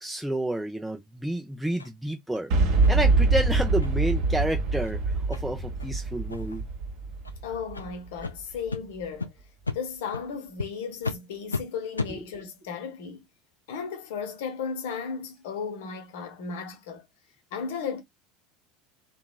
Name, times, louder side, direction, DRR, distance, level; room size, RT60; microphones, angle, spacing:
voice 1, 0.0-2.5 2.9-5.0 5.3-6.6, right 1 dB, 5° right, 0.6 m, -30 dB
sound 1, 1.8-1.9 2.3-2.4 2.8-2.9 3.3-3.4 3.8-3.9 4.3-4.4 4.8-4.9 5.3-5.4 5.8-5.9 6.3-6.6 7.2-7.3 7.7-7.9 8.2-8.3 8.7-8.8 9.2-9.3 9.6-9.8 10.1-10.2 10.6-10.7 11.0-11.2 11.5-11.6 11.9-12.1, left 4 dB, 85° left, 0.4 m, -33 dB
Boom, 2.5-8.4, right 3 dB, 55° right, 1.1 m, -24 dB
voice 2, 7.4-9.3 9.7-13.2 13.7-17.1 17.5-18.0, left 6 dB, 60° left, 0.8 m, -35 dB
2.9 x 2.3 x 2.3 m
figure-of-eight pair, 75°, 0 cm